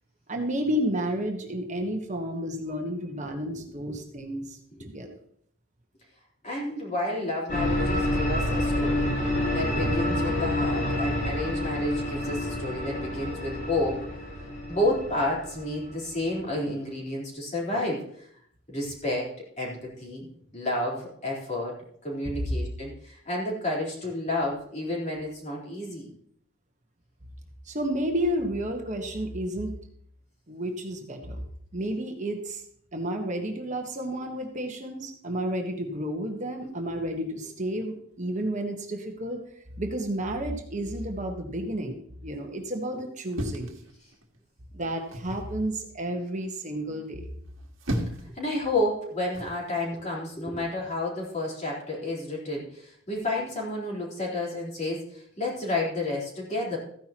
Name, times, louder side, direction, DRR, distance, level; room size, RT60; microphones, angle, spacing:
voice 1, 0.3-5.1 27.6-29.8 30.5-31.4 31.7-32.6 32.9-39.4 39.8-43.7 44.7-47.3, right 1 dB, 35° right, 3 dB, 1.4 m, -31 dB
voice 2, 6.4-14.1 14.7-18.3 18.7-20.3 20.5-26.1 48.3-56.8, left 1 dB, 35° left, -4 dB, 4.0 m, -31 dB
sound 1, 7.5-16.3, left 1 dB, 50° left, 5.2 m, -28 dB
sound 2, 43.3-44.4 45.1-45.5 47.5-48.4 49.3-49.6, equal, 65° right, 1.7 m, -33 dB
14.5 x 10.5 x 3.0 m, 0.64 s
head